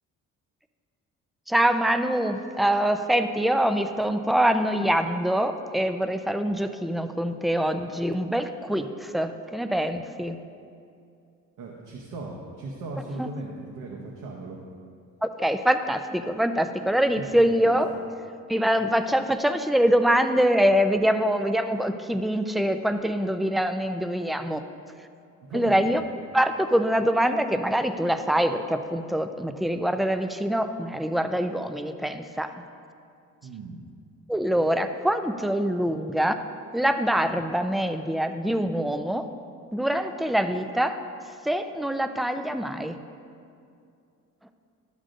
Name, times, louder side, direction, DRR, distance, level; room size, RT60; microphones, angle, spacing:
voice 1, 1.5-10.4 13.2-13.3 15.2-17.9 18.5-24.6 25.5-26.0 26.3-32.5 34.3-36.4 36.7-39.2 39.7-41.0 41.4-43.0, equal, ahead, 8 dB, 0.3 m, -24 dB
voice 2, 11.6-14.6 17.2-17.7 25.4-25.9 33.4-33.8, right 3 dB, 85° right, -2 dB, 0.9 m, -38 dB
12.0 x 6.2 x 2.6 m, 2.4 s
cardioid pair, 90°, 30 cm